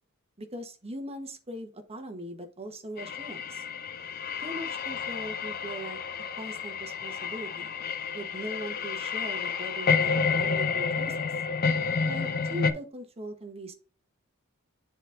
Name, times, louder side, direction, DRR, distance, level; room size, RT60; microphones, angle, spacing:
voice 1, 0.4-3.6 4.4-6.0 6.3-7.7 8.1-11.3 12.0-13.7, right 1 dB, 30° right, 6 dB, 1.0 m, -40 dB
sound 1, 3.0-12.7, left 5 dB, 45° left, 0.5 m, -30 dB
9.9 x 4.0 x 2.5 m, 0.37 s
head